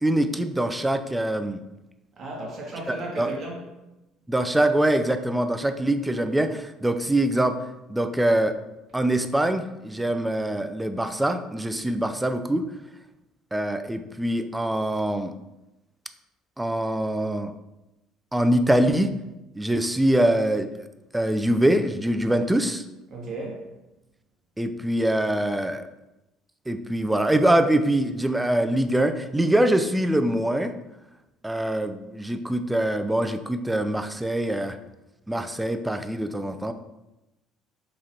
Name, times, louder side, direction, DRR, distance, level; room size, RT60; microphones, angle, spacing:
voice 1, 0.0-1.6 2.9-3.3 4.3-7.6 7.9-8.6 8.9-12.7 13.5-15.3 16.6-17.5 18.3-19.1 19.6-20.7 21.1-22.8 24.6-25.8 26.7-30.7 31.4-34.8 35.3-36.7, right 1 dB, 10° right, 8 dB, 0.3 m, -24 dB
voice 2, 2.2-3.6 23.1-23.6, right 2 dB, 45° right, -2 dB, 1.0 m, -34 dB
4.0 x 3.0 x 2.7 m, 0.96 s
figure-of-eight pair, 55°, 0 cm